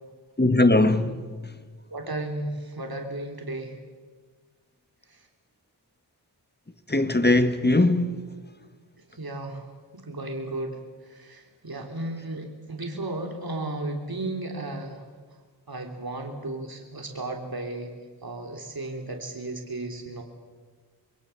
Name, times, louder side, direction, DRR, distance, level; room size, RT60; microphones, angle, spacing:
voice 1, 0.4-1.2 6.9-8.1, left 2 dB, 25° left, 1.7 m, -20 dB
voice 2, 1.9-3.7 5.1-5.2 9.1-9.7 9.9-10.8 11.1-15.0 15.7-17.9 18.2-20.2, right 2 dB, 55° right, 3.2 m, -34 dB
26.5 x 22.0 x 7.0 m
wide cardioid pair, 50°, 42 cm